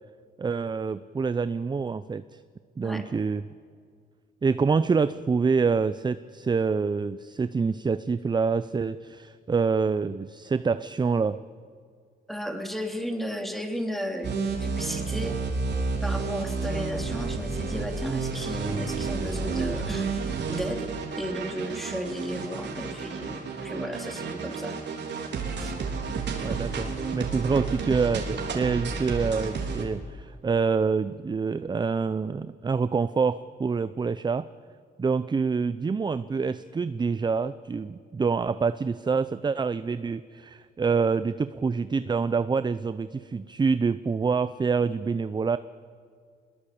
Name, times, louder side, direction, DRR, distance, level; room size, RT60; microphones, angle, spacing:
voice 1, 0.4-2.4 2.8-3.4 4.4-11.4 26.4-34.5 35.0-45.6, right 5 dB, 20° right, 14 dB, 0.5 m, -26 dB
voice 2, 12.3-15.4 16.0-20.9 21.2-24.8 25.6-25.7, equal, ahead, 4 dB, 3.2 m, -34 dB
sound 1, 14.2-29.8, right 4 dB, 60° right, 3.7 m, -31 dB
21.5 x 21.0 x 8.5 m, 2.2 s
cardioid pair, 90°, 20 cm